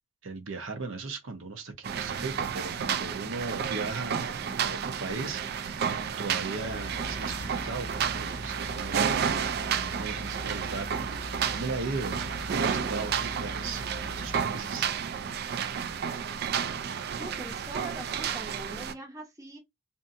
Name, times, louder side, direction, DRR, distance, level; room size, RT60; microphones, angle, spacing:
voice 1, 0.2-5.9 6.2-9.2 9.7-14.9, right 4 dB, 75° right, 0.7 m, -38 dB
sound 1, 1.8-18.9, right 7 dB, 50° right, 0.3 m, -31 dB
sound 2, 6.6-14.4, left 2 dB, 20° left, 0.7 m, -42 dB
voice 2, 17.2-19.6, right 2 dB, 15° right, 0.7 m, -42 dB
2.6 x 2.5 x 2.5 m
head